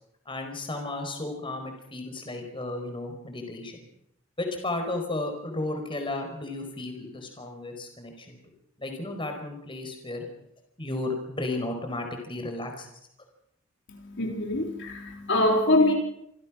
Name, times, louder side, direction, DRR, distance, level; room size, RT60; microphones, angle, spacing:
voice 1, 0.3-3.8 4.4-8.4 8.8-10.3 10.8-12.9, left 2 dB, 25° left, 5 dB, 4.8 m, -33 dB
voice 2, 13.9-15.9, left 1 dB, 60° left, 2 dB, 3.7 m, -24 dB
27.0 x 16.5 x 6.2 m, 0.77 s
head